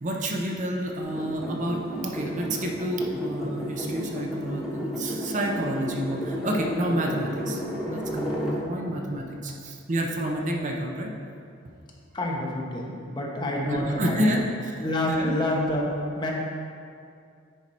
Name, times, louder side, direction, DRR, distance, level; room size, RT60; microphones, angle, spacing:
voice 1, 0.0-7.6 7.9-11.1 13.7-15.3, right 1 dB, 35° right, 1 dB, 0.6 m, -29 dB
sound 1, 1.0-8.6, equal, ahead, 1.1 m, -33 dB
voice 2, 12.1-14.4 14.8-15.9 16.2-16.3, left 1 dB, 20° left, -2 dB, 1.0 m, -28 dB
9.9 x 4.7 x 4.3 m, 2.4 s
head